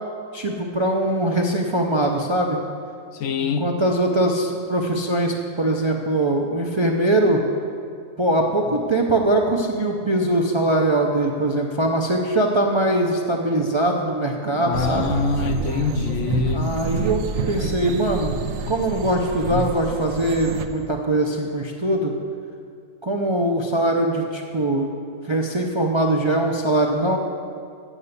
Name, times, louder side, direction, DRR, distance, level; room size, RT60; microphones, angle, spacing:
voice 1, 0.3-2.6 3.6-7.4 8.2-15.1 16.5-18.4 18.7-22.1 23.0-24.9 25.2-27.2, right 1 dB, 35° right, 1 dB, 0.4 m, -22 dB
voice 2, 3.1-3.7 14.6-16.7 19.5-19.7, left 6 dB, 70° left, 7 dB, 0.9 m, -25 dB
sound 1, 14.7-20.7, right 5 dB, 80° right, 1.0 m, -28 dB
7.4 x 6.6 x 8.1 m, 2.3 s
omnidirectional pair, 1.4 m